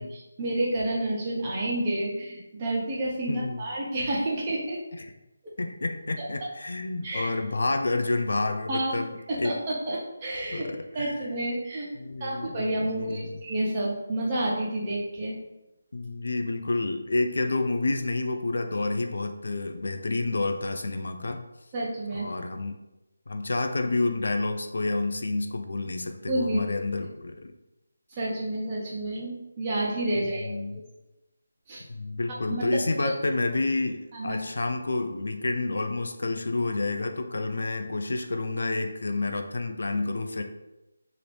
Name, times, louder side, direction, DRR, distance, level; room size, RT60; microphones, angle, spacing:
voice 1, 0.0-4.8 7.0-7.3 8.7-9.0 9.3-10.7 10.9-11.9 12.2-15.4 21.7-22.3 26.3-26.6 28.1-30.5 31.7-31.8 32.5-33.1 34.1-34.4, right 1 dB, 20° right, -5 dB, 0.8 m, -29 dB
voice 2, 3.3-3.6 5.0-5.1 5.6-9.5 10.5-11.3 11.9-13.4 15.9-21.4 22.1-22.8 23.3-27.5 30.4-30.8 31.9-40.4, left 2 dB, 65° left, 6 dB, 0.3 m, -29 dB
2.8 x 2.5 x 3.3 m, 0.97 s
figure-of-eight pair, 170°, 0 cm